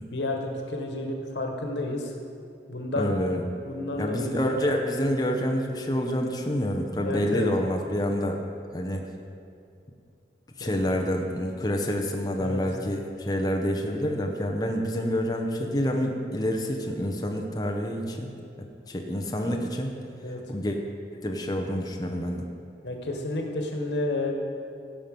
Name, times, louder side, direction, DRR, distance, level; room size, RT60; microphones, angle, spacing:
voice 1, 0.1-2.1 2.7-3.1 3.6-4.5 7.0-7.5 10.6-10.8 12.3-12.6 20.2-20.4 22.8-24.3, left 2 dB, 85° left, 2 dB, 1.4 m, -31 dB
voice 2, 3.0-3.5 4.0-8.4 8.7-9.1 10.6-18.3 18.9-19.9 20.5-20.8 21.1-22.4, equal, 20° left, 2 dB, 0.7 m, -27 dB
16.5 x 5.8 x 5.3 m, 2.6 s
head